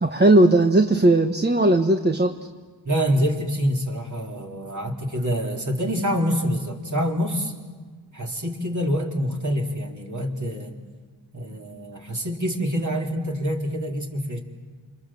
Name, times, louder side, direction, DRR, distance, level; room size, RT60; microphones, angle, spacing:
voice 1, 0.0-2.3, right 2 dB, 20° right, 4 dB, 1.3 m, -17 dB
voice 2, 2.8-7.5 8.1-10.7 11.3-14.4, equal, 35° right, 0 dB, 4.0 m, -26 dB
28.5 x 27.0 x 7.8 m, 1.5 s
wide cardioid pair, 70°, 48 cm